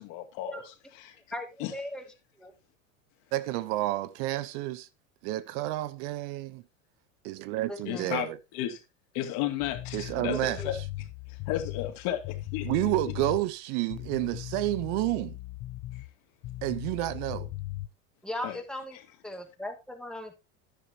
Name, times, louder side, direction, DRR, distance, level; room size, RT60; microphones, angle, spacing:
voice 1, 0.0-1.1 1.6-1.7 7.9-8.8 9.1-10.8 11.3-12.9 18.4-18.6, left 12 dB, 60° left, 2.4 m, -34 dB
voice 2, 1.3-2.0 2.4-2.5 7.7-8.2 10.3-10.7 18.2-19.0 19.2-20.4, left 1 dB, ahead, 2.3 m, -38 dB
voice 3, 3.3-4.9 5.2-6.6 7.2-8.4 9.9-10.6 12.6-15.4 16.6-17.5, right 16 dB, 60° right, 0.9 m, -30 dB
sound 1, 9.6-13.5 13.9-16.1 16.4-17.9, left 16 dB, 45° left, 0.8 m, -38 dB
10.5 x 10.0 x 2.9 m
hypercardioid pair, 100°, 40 cm